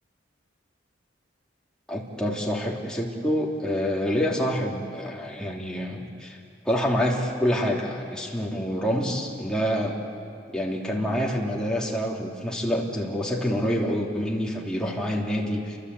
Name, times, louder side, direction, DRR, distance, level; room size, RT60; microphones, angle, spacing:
voice 1, 1.9-6.4 6.6-10.0 10.5-15.8, equal, 5° left, -3 dB, 3.2 m, -27 dB
29.0 x 24.0 x 8.5 m, 2.3 s
head